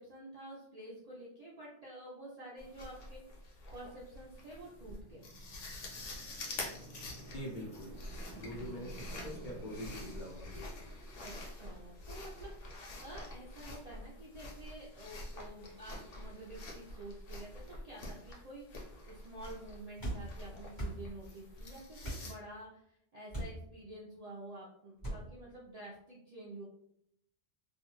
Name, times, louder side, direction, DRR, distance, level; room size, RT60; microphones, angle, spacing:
voice 1, 0.0-5.3 11.2-26.6, right 1 dB, 50° right, -5 dB, 0.4 m, -50 dB
sound 1, 2.6-22.3, left 2 dB, 85° left, 1.0 m, -47 dB
sound 2, 4.2-11.1, right 4 dB, 75° right, 0.9 m, -54 dB
voice 2, 7.3-7.9 8.3-10.7, equal, 45° left, -4 dB, 0.8 m, -44 dB
sound 3, 20.0-20.2 20.7-21.0 22.0-22.3 23.3-23.6 25.0-25.2, right 1 dB, 20° left, 1.2 m, -38 dB
2.5 x 2.2 x 2.9 m, 0.73 s
omnidirectional pair, 1.2 m